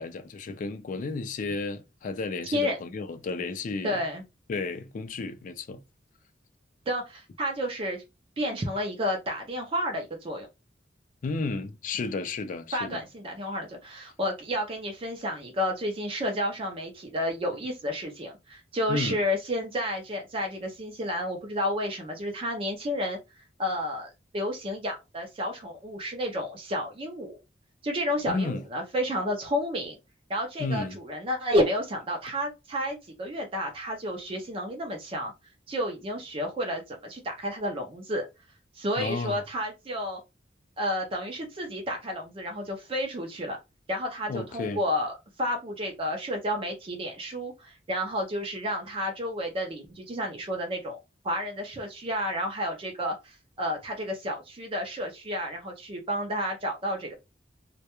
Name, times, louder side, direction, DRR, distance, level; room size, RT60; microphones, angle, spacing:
voice 1, 0.0-4.0 4.5-5.8 11.2-13.0 18.9-19.2 28.3-28.6 30.6-31.0 39.0-39.4 44.3-44.8, left 3 dB, 45° left, 0.3 m, -32 dB
voice 2, 3.8-4.2 6.9-8.0 8.4-10.5 12.7-23.2 23.6-27.4 27.8-30.0 30.3-35.3 35.7-38.3 38.7-40.2 40.8-43.6 43.9-51.0 51.2-57.1, equal, 30° right, 0.4 m, -31 dB
2.2 x 2.1 x 2.8 m
head